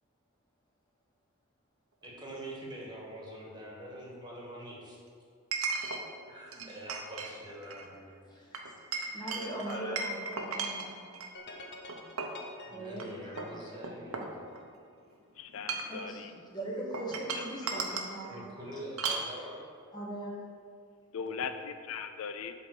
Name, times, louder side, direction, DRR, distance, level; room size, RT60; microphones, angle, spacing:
voice 1, 2.0-5.0 6.2-8.2 12.7-14.4 18.3-19.7 21.2-21.5, right 1 dB, 20° right, -4 dB, 1.6 m, -45 dB
Chink clink, 2.0-2.1 5.5-6.0 6.5-7.3 7.6-7.9 8.5-11.3 11.9-12.4 12.9-13.0 13.4-14.8 15.5-16.0 16.9-18.1 19.0-19.3, right 4 dB, 85° right, 0.9 m, -36 dB
voice 2, 8.2-8.6 9.1-11.1 12.7-13.7 15.9-18.4 18.7-18.8 19.9-20.4, right 1 dB, 20° left, -3 dB, 1.4 m, -40 dB
sound 1, 11.3-14.7, left 2 dB, 50° left, 0.8 m, -49 dB
voice 3, 15.4-16.3 17.3-17.4 21.1-22.5, left 6 dB, 70° left, 9 dB, 0.4 m, -39 dB
8.1 x 3.8 x 6.5 m, 2.2 s
head